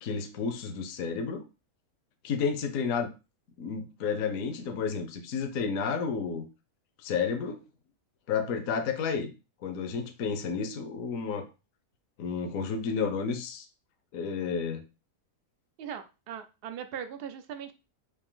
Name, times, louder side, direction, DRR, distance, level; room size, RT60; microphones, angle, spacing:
voice 1, 0.0-1.4 2.2-3.1 3.6-6.5 7.0-7.6 8.3-9.3 9.6-11.5 12.2-13.7 14.1-14.8, left 5 dB, 65° left, 7 dB, 1.0 m, -31 dB
voice 2, 15.8-17.7, right 8 dB, 70° right, 8 dB, 0.5 m, -39 dB
4.9 x 2.5 x 3.7 m, 0.29 s
omnidirectional pair, 1.6 m